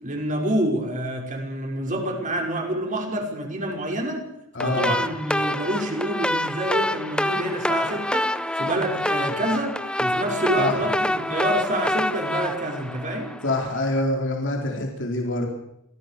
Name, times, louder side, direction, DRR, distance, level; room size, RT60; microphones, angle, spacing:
voice 1, 0.0-4.3 4.6-13.3, right 1 dB, 40° right, 1 dB, 5.9 m, -27 dB
voice 2, 4.5-4.9 10.6-10.8 13.4-15.5, left 1 dB, 60° left, 1 dB, 4.2 m, -25 dB
sound 1, 4.6-13.7, left 1 dB, 5° left, 1.0 m, -26 dB
27.0 x 17.0 x 6.9 m, 0.79 s
head